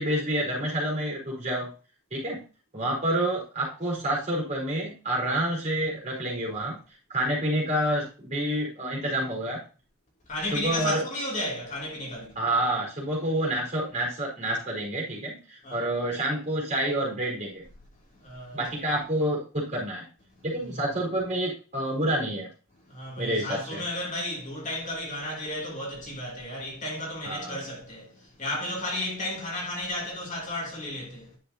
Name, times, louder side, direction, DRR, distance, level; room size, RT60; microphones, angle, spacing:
voice 1, 0.0-1.7 2.1-2.4 2.7-6.8 7.1-9.6 10.5-11.0 12.4-17.6 18.5-20.0 20.4-22.5 23.2-23.8 27.2-27.6, right 1 dB, 30° right, 4.6 m, -28 dB
voice 2, 10.3-12.4 15.6-15.9 18.1-18.7 20.4-20.8 22.8-31.4, left 1 dB, 35° left, 2.8 m, -34 dB
10.0 x 6.8 x 2.8 m
head